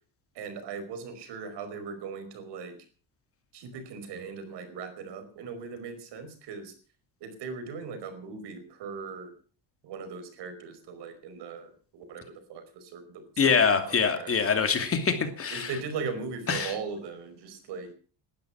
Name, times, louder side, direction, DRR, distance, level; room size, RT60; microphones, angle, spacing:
voice 1, 0.3-2.8 3.5-6.7 7.2-9.3 9.8-14.4 15.5-17.9, right 5 dB, 65° right, 9 dB, 5.2 m, -39 dB
voice 2, 13.4-15.7 16.5-16.7, left 5 dB, 30° left, 7 dB, 2.6 m, -24 dB
18.5 x 12.5 x 6.0 m, 0.39 s
cardioid pair, 140°, 44 cm